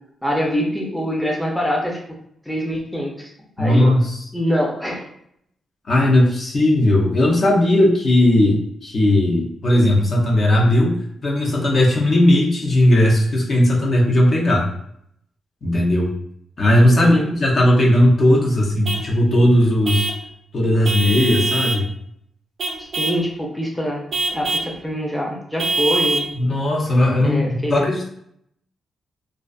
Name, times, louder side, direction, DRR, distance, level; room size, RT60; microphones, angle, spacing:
voice 1, 0.2-2.0 2.5-3.3 3.6-3.9 4.3-5.0 17.0-17.3 22.8-24.0 24.3-26.6 27.2-27.9, equal, ahead, -2 dB, 0.5 m, -24 dB
voice 2, 3.6-4.2 5.9-10.9 11.2-14.7 15.6-16.1 16.6-20.1 20.5-21.9 26.3-28.1, left 1 dB, 50° left, -2 dB, 0.6 m, -17 dB
Vehicle horn car horn honking / Truck, 18.8-19.1 19.8-20.3 20.8-21.9 22.6-23.3 24.1-24.7 25.6-26.3, right 3 dB, 60° right, 0.4 m, -23 dB
2.4 x 2.3 x 2.3 m, 0.71 s
cardioid pair, 85°, 0 cm